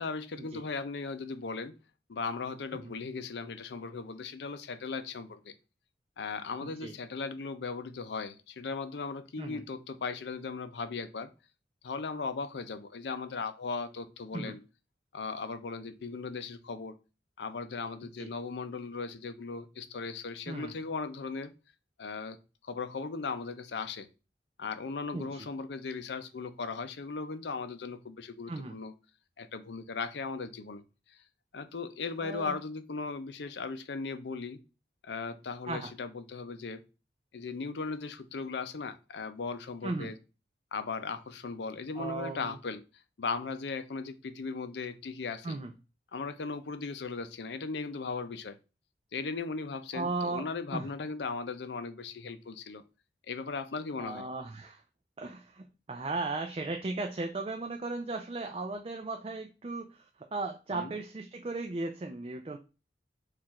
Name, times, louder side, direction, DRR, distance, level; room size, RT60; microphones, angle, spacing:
voice 1, 0.0-1.7 2.1-5.5 6.2-11.3 11.8-14.6 15.1-16.9 17.4-21.5 22.0-22.4 22.6-24.1 24.6-28.9 29.4-30.8 31.1-31.2 31.5-34.6 35.0-36.8 37.3-40.2 40.7-42.8 43.2-45.6 46.1-48.6 49.1-52.8 53.3-54.3 60.7-60.9, left 4 dB, 75° left, 11 dB, 0.5 m, -37 dB
voice 2, 6.6-6.9 9.4-9.6 14.3-14.6 18.0-18.3 20.5-20.7 25.1-25.5 28.5-28.8 32.2-32.5 35.7-35.9 39.8-40.1 42.0-42.6 45.4-45.7 49.9-50.5 50.7-50.9 54.0-54.8 55.2-62.6, right 3 dB, 30° right, 4 dB, 0.4 m, -36 dB
4.5 x 2.5 x 4.2 m, 0.31 s
head